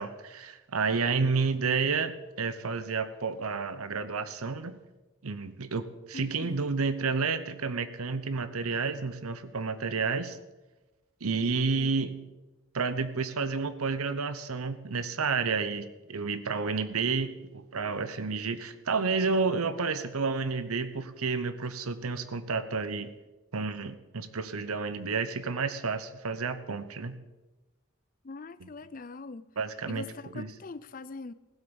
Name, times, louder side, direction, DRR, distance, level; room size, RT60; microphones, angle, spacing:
voice 1, 0.0-4.8 5.2-10.4 11.2-12.1 12.7-23.1 23.5-27.2 28.6-28.7 29.6-30.1 30.3-30.5, right 4 dB, 90° right, 0.9 m, -30 dB
voice 2, 6.1-6.6 11.7-11.9 28.2-29.5 29.9-31.3, left 3 dB, 40° left, 0.5 m, -42 dB
15.5 x 8.2 x 7.0 m
head